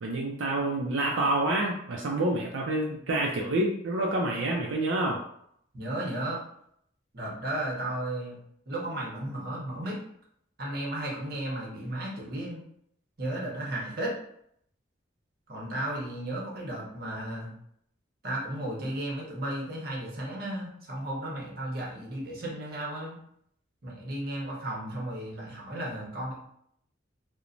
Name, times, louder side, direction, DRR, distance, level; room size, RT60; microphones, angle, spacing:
voice 1, 0.0-5.2, right 2 dB, 85° right, -2 dB, 0.4 m, -28 dB
voice 2, 5.7-6.4 7.1-10.0 10.6-12.6 13.2-14.1 15.5-17.5 18.2-23.2 23.8-26.3, right 1 dB, 50° right, -3 dB, 0.8 m, -34 dB
3.0 x 2.1 x 2.5 m, 0.70 s
head